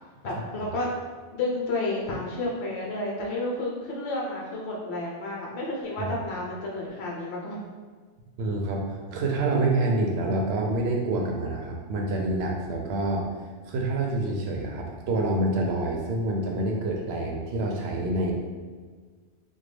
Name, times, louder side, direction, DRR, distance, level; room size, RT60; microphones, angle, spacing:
voice 1, 0.2-0.9 1.3-7.6, left 2 dB, 65° left, -3 dB, 1.0 m, -31 dB
voice 2, 8.4-13.3 13.7-18.3, right 2 dB, 65° right, 0 dB, 0.8 m, -27 dB
3.5 x 2.2 x 3.3 m, 1.5 s
omnidirectional pair, 1.2 m